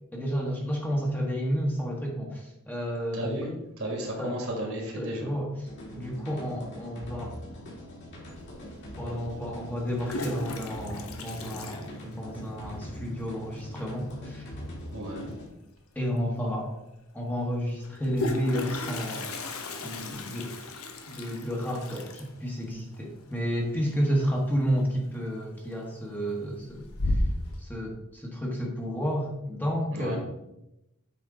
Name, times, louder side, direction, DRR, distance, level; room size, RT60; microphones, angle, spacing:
voice 1, 0.1-3.3 4.2-4.3 5.0-5.5 5.9-7.4 9.0-14.5 15.9-16.7 17.1-19.3 19.8-20.7 21.1-27.2 27.6-30.2, equal, 10° left, -2 dB, 1.3 m, -31 dB
voice 2, 3.1-3.5 3.8-5.3 14.9-15.3 29.9-30.2, right 1 dB, 65° right, 0 dB, 2.3 m, -33 dB
sound 1, 5.6-15.5, equal, 55° left, 2.6 m, -42 dB
Toilet flush, 8.5-8.6 9.7-12.6 12.8-12.9 13.2-13.3 13.6-14.0 15.7-15.8 16.1-16.2 17.8-24.5 24.8-25.2 25.6-26.2 26.6-27.6, left 1 dB, 70° left, 1.0 m, -35 dB
8.2 x 5.3 x 3.8 m, 0.88 s
head